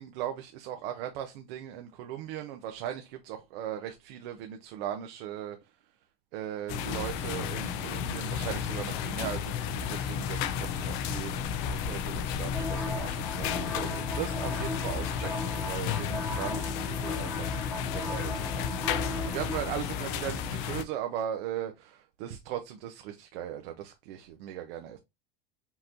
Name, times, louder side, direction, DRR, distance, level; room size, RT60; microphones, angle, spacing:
voice 1, 0.0-5.8 6.3-18.6 19.0-25.0, right 10 dB, 80° right, 0.8 m, -38 dB
sound 1, 6.7-20.8, left 8 dB, 60° left, 0.7 m, -33 dB
sound 2, 12.5-19.7, equal, 10° left, 1.3 m, -38 dB
5.6 x 3.0 x 2.6 m
supercardioid pair, 165°, 30 cm